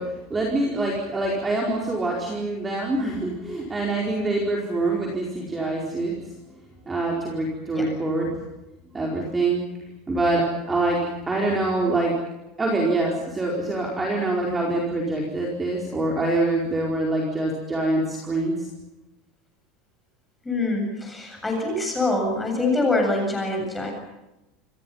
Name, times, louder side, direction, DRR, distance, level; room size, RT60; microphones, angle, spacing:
voice 1, 0.0-6.1 6.9-8.3 8.9-9.6 10.1-11.0 11.3-12.1 12.6-18.7, right 2 dB, 10° right, -1 dB, 4.7 m, -25 dB
voice 2, 20.4-23.9, left 2 dB, 5° left, 2 dB, 7.8 m, -24 dB
28.0 x 27.0 x 5.7 m, 0.97 s
supercardioid pair, 180°, 0 cm